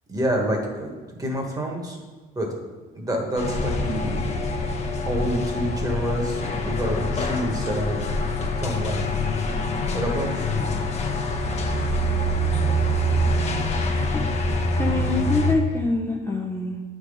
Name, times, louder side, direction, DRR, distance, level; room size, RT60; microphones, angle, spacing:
voice 1, 0.1-2.0 2.3-2.5 2.9-4.2 5.0-8.0 8.5-9.0 9.9-10.6, right 1 dB, 20° right, 1 dB, 1.6 m, -28 dB
sound 1, 3.4-15.5, left 1 dB, 40° left, 1.0 m, -25 dB
voice 2, 14.8-16.8, left 3 dB, 15° left, 0 dB, 0.7 m, -25 dB
8.9 x 3.8 x 5.0 m, 1.4 s
cardioid pair, 110°, 17 cm